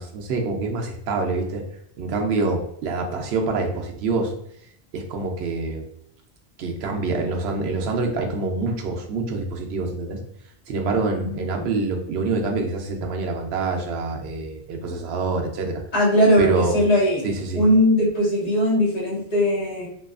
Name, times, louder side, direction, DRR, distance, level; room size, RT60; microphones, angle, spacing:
voice 1, 0.0-1.6 2.0-4.3 4.9-5.8 6.6-10.2 10.7-15.8 16.4-16.7 17.2-17.6, right 3 dB, 80° right, 2 dB, 0.8 m, -26 dB
voice 2, 11.2-11.6 15.9-17.2 17.5-19.9, equal, 40° left, -7 dB, 1.2 m, -19 dB
2.8 x 2.3 x 2.3 m, 0.73 s
omnidirectional pair, 1.1 m